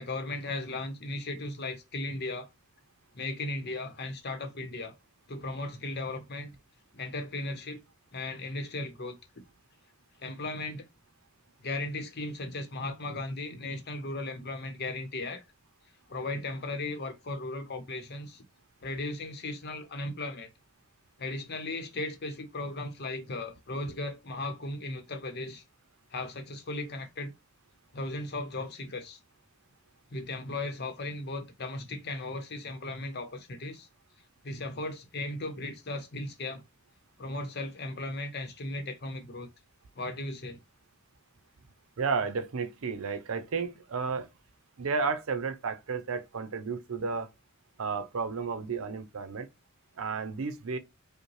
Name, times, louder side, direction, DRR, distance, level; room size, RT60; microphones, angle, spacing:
voice 1, 0.0-2.5 3.1-4.9 5.3-6.5 6.9-7.8 8.1-9.4 10.2-10.9 11.6-15.4 16.1-18.4 18.8-20.5 21.2-25.6 26.1-27.3 27.9-29.2 30.1-33.9 34.4-36.6 37.2-39.5 40.0-40.6, left 2 dB, 50° left, 0.8 m, -36 dB
voice 2, 42.0-44.3 44.8-47.3 47.8-49.5 50.0-50.8, right 5 dB, 80° right, 0.6 m, -32 dB
5.2 x 2.2 x 3.1 m
head